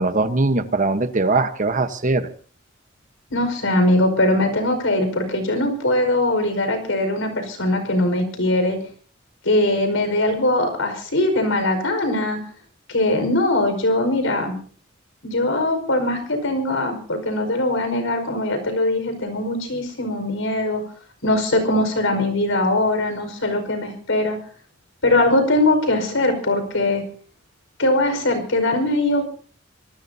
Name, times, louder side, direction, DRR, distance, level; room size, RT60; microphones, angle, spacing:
voice 1, 0.0-2.3, right 3 dB, 40° right, 10 dB, 1.2 m, -21 dB
voice 2, 3.3-8.8 9.5-12.4 12.9-14.6 15.2-20.8 21.2-24.4 25.0-27.0 27.8-29.3, left 1 dB, 90° left, 7 dB, 5.1 m, -21 dB
27.0 x 19.5 x 2.8 m, 0.43 s
head